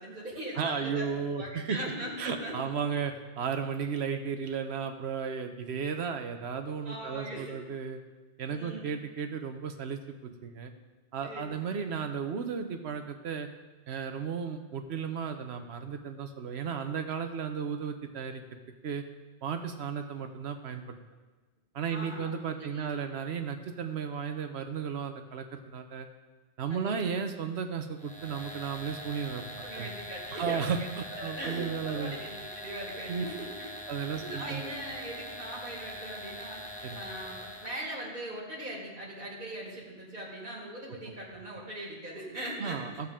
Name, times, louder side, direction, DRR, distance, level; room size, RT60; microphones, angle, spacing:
voice 1, 0.0-1.1 1.3-2.7 6.8-7.6 8.5-8.9 11.2-11.9 21.9-22.9 26.7-27.2 29.6-33.7 34.1-36.6 36.9-43.0, right 1 dB, 45° right, -5 dB, 2.5 m, -40 dB
voice 2, 0.6-1.8 2.2-8.0 8.4-10.7 11.1-13.5 13.9-18.4 18.8-19.0 19.4-20.8 21.7-26.1 26.6-29.9 30.3-30.8 31.2-32.1 33.1-33.2 33.9-34.7 36.8-37.0 42.6-43.1, right 6 dB, 75° right, 6 dB, 1.1 m, -34 dB
sound 1, 28.0-37.8, equal, 5° left, 1.3 m, -43 dB
14.0 x 8.0 x 3.7 m, 1.3 s
omnidirectional pair, 1.1 m